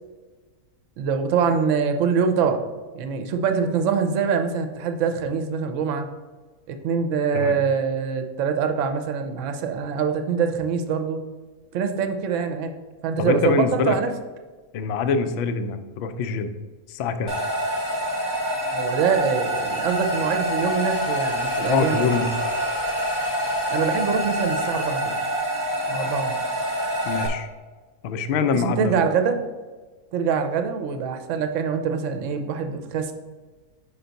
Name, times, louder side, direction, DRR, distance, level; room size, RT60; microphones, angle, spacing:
voice 1, 1.0-2.7 2.9-6.1 6.7-11.2 11.7-12.7 13.0-14.1 18.7-22.2 23.7-25.2 25.9-26.5 28.5-29.4 30.1-33.1, right 6 dB, 65° right, 7 dB, 0.9 m, -24 dB
voice 2, 13.2-14.0 14.7-16.5 16.9-17.3 21.7-22.3 27.0-27.5 28.0-28.9, left 5 dB, 70° left, 9 dB, 0.6 m, -24 dB
sound 1, 17.3-27.3, equal, 20° left, 0.7 m, -26 dB
5.6 x 4.6 x 4.0 m, 1.3 s
omnidirectional pair, 1.6 m